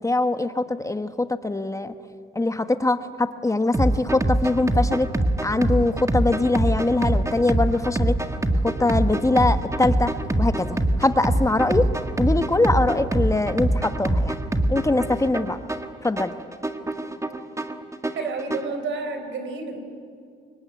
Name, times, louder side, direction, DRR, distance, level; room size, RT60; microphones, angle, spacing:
voice 1, 0.0-1.9 2.3-5.1 5.4-8.1 8.6-10.1 10.4-11.9 12.2-14.3 14.7-15.6 16.0-16.3, left 2 dB, 15° left, 9 dB, 1.1 m, -22 dB
sound 1, 3.7-18.7, right 1 dB, 15° right, 1.7 m, -24 dB
voice 2, 18.1-19.8, right 4 dB, 75° right, 7 dB, 4.3 m, -30 dB
25.5 x 22.5 x 9.4 m, 2.3 s
cardioid pair, 90°, 20 cm